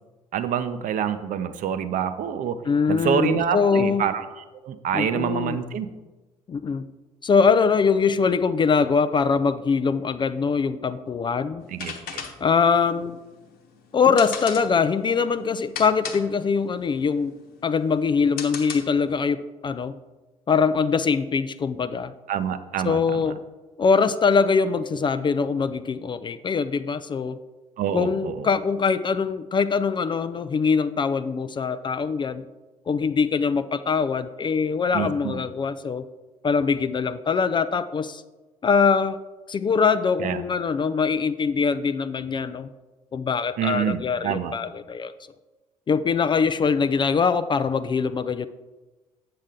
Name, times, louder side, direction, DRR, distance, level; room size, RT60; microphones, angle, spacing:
voice 1, 0.3-2.6 2.9-5.9 11.7-12.2 22.3-23.3 27.8-28.5 34.9-35.4 40.2-40.4 43.6-44.5, right 8 dB, 50° right, 11 dB, 0.7 m, -27 dB
voice 2, 2.7-4.0 4.9-5.6 6.5-6.9 7.2-11.6 12.4-13.2 13.9-17.4 17.6-19.9 20.5-22.1 22.8-23.4 23.8-27.4 27.9-32.4 32.9-36.0 36.4-38.2 38.6-39.2 39.5-42.7 43.1-45.1 45.9-48.5, left 5 dB, 25° left, 12 dB, 0.4 m, -23 dB
sound 1, 11.6-19.2, left 7 dB, 55° left, 1.1 m, -37 dB
8.6 x 7.4 x 3.7 m, 1.2 s
figure-of-eight pair, 55°, 18 cm